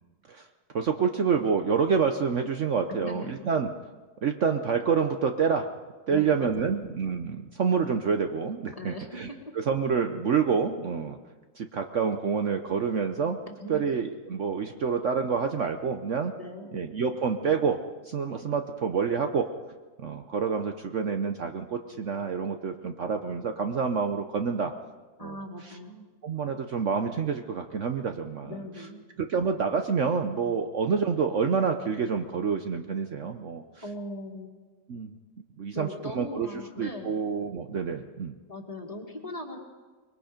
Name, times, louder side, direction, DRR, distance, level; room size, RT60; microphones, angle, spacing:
voice 1, 0.7-3.7 4.2-5.7 6.1-9.3 9.5-11.2 11.5-13.4 13.7-16.3 16.7-19.5 20.0-24.7 25.2-25.4 26.2-28.6 29.2-33.6 34.9-35.1 35.6-36.5 36.8-38.4, right 6 dB, 55° right, 6 dB, 1.1 m, -27 dB
voice 2, 3.0-3.4 6.1-6.7 8.8-9.1 13.5-13.8 16.4-16.8 25.2-26.1 28.4-29.0 33.8-34.5 35.7-37.2 38.5-39.6, left 1 dB, 20° left, 1 dB, 2.2 m, -39 dB
24.5 x 22.0 x 5.1 m, 1.3 s
omnidirectional pair, 1.7 m